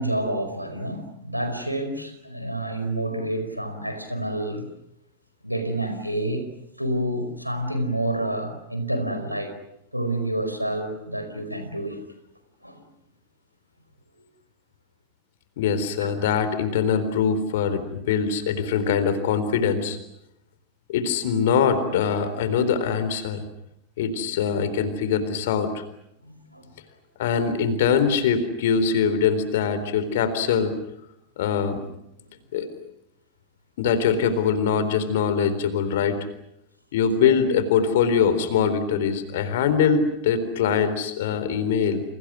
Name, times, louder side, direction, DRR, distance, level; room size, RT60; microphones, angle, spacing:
voice 1, 0.0-4.7 5.4-6.5 6.8-9.5 9.9-12.0 12.6-12.8 16.0-16.1 26.2-26.7 31.6-31.7 37.2-37.3, right 1 dB, 90° right, 8 dB, 4.8 m, -28 dB
voice 2, 15.6-20.0 20.9-23.4 24.0-25.8 27.2-30.7 31.4-31.8 32.5-32.7 33.8-36.2 36.9-42.0, left 6 dB, 55° left, 12 dB, 3.9 m, -23 dB
30.0 x 28.5 x 6.3 m, 0.80 s
figure-of-eight pair, 90°, 0 cm